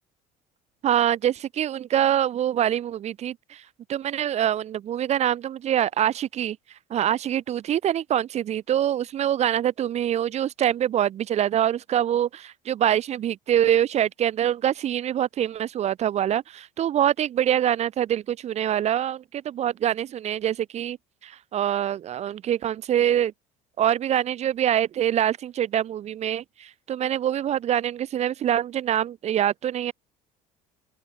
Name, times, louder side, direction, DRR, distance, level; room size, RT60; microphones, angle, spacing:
voice 1, 0.8-3.6 3.9-6.6 6.9-21.0 21.2-23.3 23.8-29.9, right 10 dB, 35° right, 0.4 m, -24 dB
open air
hypercardioid pair, 65°, 20 cm